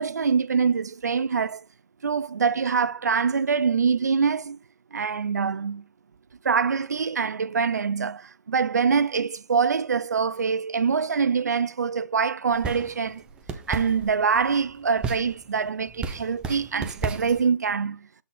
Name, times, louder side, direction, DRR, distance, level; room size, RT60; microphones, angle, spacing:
voice 1, 0.0-1.6 2.0-4.6 4.9-5.8 6.4-13.2 13.7-18.1, right 5 dB, 75° right, 0.5 m, -24 dB
sound 1, 12.5-17.5, right 4 dB, 10° right, 0.7 m, -35 dB
8.1 x 4.1 x 3.7 m
hypercardioid pair, 145°, 9 cm